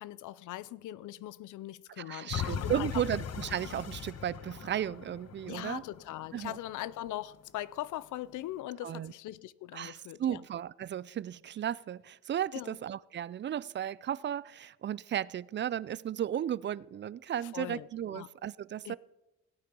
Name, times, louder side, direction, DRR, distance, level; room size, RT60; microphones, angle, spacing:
voice 1, 0.0-3.0 5.5-10.4 12.5-12.8 17.5-18.3 18.8-19.0, left 14 dB, 80° left, 0.6 m, -41 dB
voice 2, 2.0-5.8 6.3-6.6 8.8-9.1 9.7-19.0, right 10 dB, 40° right, 0.4 m, -35 dB
sound 1, 2.3-7.3 7.8-7.9, left 8 dB, 55° left, 1.3 m, -39 dB
16.5 x 8.8 x 5.3 m
cardioid pair, 90°, 30 cm